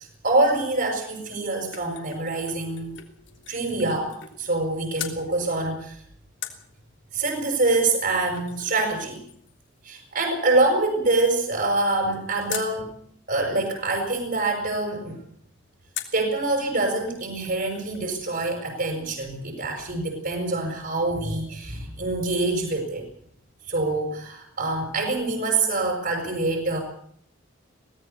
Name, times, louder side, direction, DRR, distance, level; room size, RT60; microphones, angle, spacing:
voice 1, 0.0-2.9 3.5-6.0 7.1-9.2 9.8-12.9 13.3-15.2 16.1-23.1 23.6-26.8, right 2 dB, 50° right, 2 dB, 5.9 m, -25 dB
sound 1, 1.2-4.7 5.0-5.2 6.4-12.8 15.9-16.3 16.8-16.9 17.1-18.1 18.3-18.4, left 10 dB, 65° left, 3.4 m, -42 dB
23.5 x 18.0 x 6.9 m, 0.66 s
head